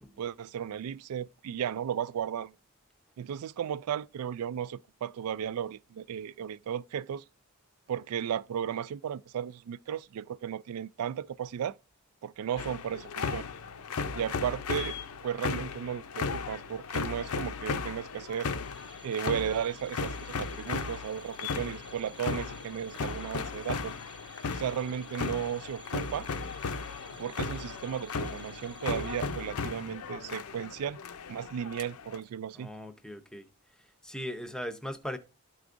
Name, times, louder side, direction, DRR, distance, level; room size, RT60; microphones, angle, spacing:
voice 1, 0.2-2.5 3.2-7.2 7.9-11.8 12.2-13.4 14.1-15.0 15.2-18.5 19.0-23.9 24.5-26.3 27.2-31.0 31.3-32.7, right 9 dB, 80° right, 0.3 m, -35 dB
sound 1, 12.6-32.2, left 5 dB, 80° left, 0.6 m, -36 dB
sound 2, 18.2-30.0, right 3 dB, 20° right, 1.0 m, -54 dB
voice 2, 32.5-33.5 33.8-35.2, left 1 dB, 5° left, 0.6 m, -39 dB
12.5 x 4.7 x 2.5 m
head